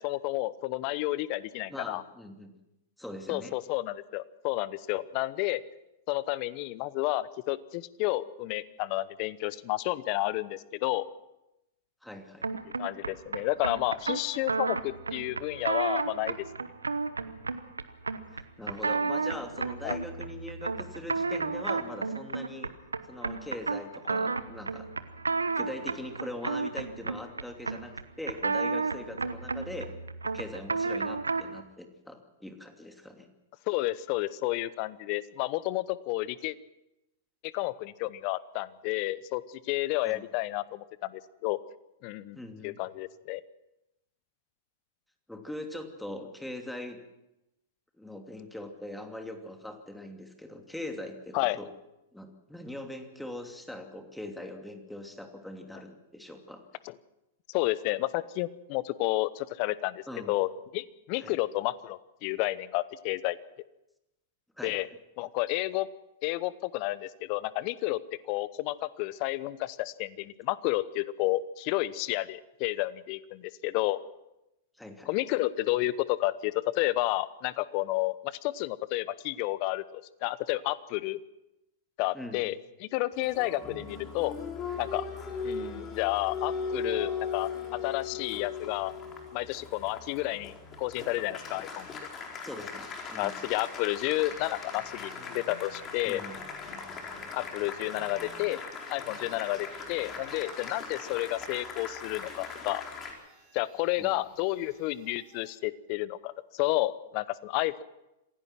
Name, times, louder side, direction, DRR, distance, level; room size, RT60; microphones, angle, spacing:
voice 1, 0.0-2.0 3.3-5.6 6.1-11.1 12.6-16.5 19.8-20.0 33.7-36.5 37.4-41.6 42.0-42.4 42.6-43.4 51.3-51.6 56.8-56.9 57.5-63.4 64.6-64.9 65.2-65.9 66.2-68.0 68.3-74.0 75.1-81.2 82.0-82.6 82.8-84.4 84.8-85.0 85.4-88.9 89.3-91.9 93.2-96.2 97.3-98.6 98.9-102.8 103.5-107.8, left 18 dB, 45° left, 18 dB, 1.0 m, -31 dB
voice 2, 1.7-2.5 3.0-3.5 12.0-12.5 18.3-22.7 23.1-24.9 25.6-29.9 30.2-33.3 40.0-40.2 42.3-42.8 45.3-47.0 48.0-51.7 52.1-56.6 60.1-60.3 61.2-61.4 64.6-64.8 74.8-75.1 82.1-82.5 92.4-93.3 96.0-96.4 104.0-104.1, left 1 dB, 5° left, 4 dB, 2.8 m, -41 dB
sound 1, 12.4-31.6, right 4 dB, 85° right, 1.0 m, -32 dB
Applause, 83.1-103.1, left 5 dB, 30° left, 4.4 m, -39 dB
sound 2, 97.1-105.6, right 2 dB, 45° right, 7.8 m, -58 dB
26.5 x 16.5 x 6.1 m, 0.91 s
figure-of-eight pair, 100°, 0 cm